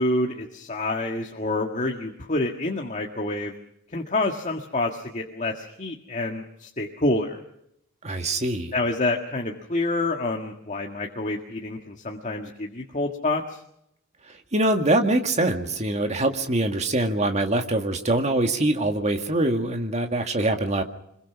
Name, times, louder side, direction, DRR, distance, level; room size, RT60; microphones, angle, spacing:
voice 1, 0.0-3.5 3.9-7.4 8.7-13.6, left 2 dB, 35° left, 1.8 m, -27 dB
voice 2, 8.0-8.7 14.5-20.8, right 2 dB, 30° right, 2.0 m, -23 dB
25.5 x 22.0 x 6.1 m
head